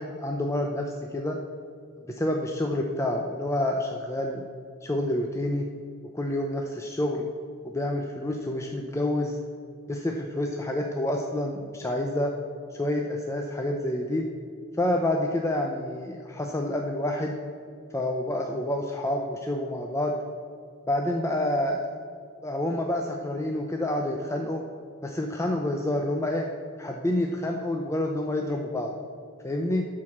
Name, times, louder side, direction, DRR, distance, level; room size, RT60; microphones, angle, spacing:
voice 1, 0.0-1.4 2.1-4.4 4.8-5.6 6.1-7.3 7.6-9.4 9.9-12.3 12.7-14.3 14.8-17.4 17.9-20.1 20.9-21.9 22.4-24.6 25.0-26.5 26.8-28.9 29.4-29.9, left 1 dB, 15° left, 2 dB, 0.5 m, -28 dB
11.5 x 4.8 x 7.1 m, 2.4 s
head